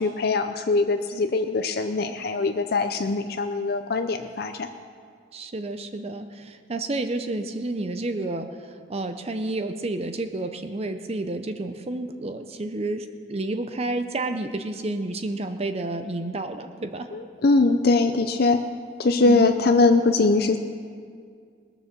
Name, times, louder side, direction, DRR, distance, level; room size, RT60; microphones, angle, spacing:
voice 1, 0.0-4.7 17.1-18.6 19.0-20.6, left 3 dB, 50° left, 7 dB, 0.5 m, -22 dB
voice 2, 5.3-17.1 19.3-19.5, right 2 dB, 30° right, 8 dB, 0.6 m, -30 dB
19.5 x 7.1 x 6.7 m, 2.1 s
head